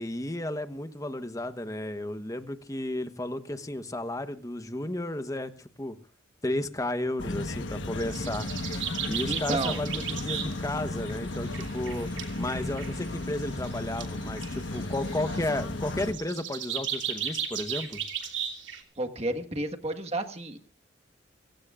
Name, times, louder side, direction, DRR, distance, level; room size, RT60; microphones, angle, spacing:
voice 1, 0.0-6.0 6.4-8.5 9.1-12.1 12.4-18.0, left 1 dB, 20° left, 9 dB, 1.1 m, -33 dB
sound 1, 7.2-16.1, left 2 dB, 75° left, 1.3 m, -35 dB
sound 2, 8.0-10.7 11.1-18.8, right 8 dB, 75° right, 2.9 m, -36 dB
voice 2, 9.3-9.8 19.0-20.6, right 2 dB, 35° right, 5 dB, 1.5 m, -31 dB
30.0 x 17.0 x 2.5 m, 0.37 s
head